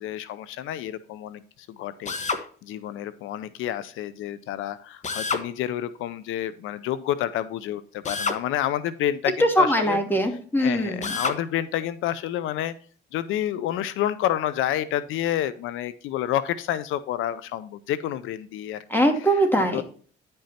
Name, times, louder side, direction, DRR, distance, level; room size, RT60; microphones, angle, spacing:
voice 1, 0.0-10.0 10.6-12.7 13.1-18.8 19.2-19.4 19.7-19.8, left 12 dB, 90° left, 15 dB, 0.6 m, -29 dB
Drill, 2.0-2.5 5.0-5.5 8.0-8.4 11.0-11.4, left 4 dB, 35° left, 1.3 m, -28 dB
voice 2, 9.4-11.1 18.9-19.8, equal, 10° left, 4 dB, 2.6 m, -21 dB
10.5 x 5.4 x 4.2 m, 0.43 s
cardioid pair, 90°, 20 cm